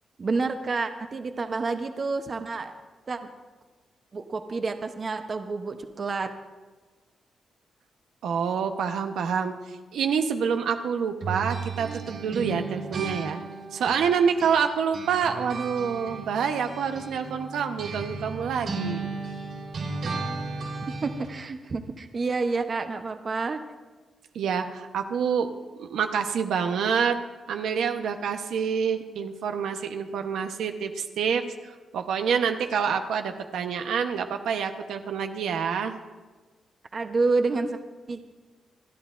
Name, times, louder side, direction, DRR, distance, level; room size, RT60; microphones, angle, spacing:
voice 1, 0.2-2.7 3.1-3.3 4.1-6.3 21.0-23.6 36.9-37.8 38.1-38.2, right 3 dB, 35° right, 7 dB, 0.8 m, -29 dB
voice 2, 8.2-13.4 13.7-19.1 24.3-27.2 27.5-31.4 31.9-35.9, right 6 dB, 90° right, 6 dB, 0.9 m, -27 dB
sound 1, 11.2-14.7 14.9-21.3, right 3 dB, 60° right, 3.6 m, -35 dB
28.0 x 11.5 x 2.5 m, 1.3 s
wide cardioid pair, 155°, 0 cm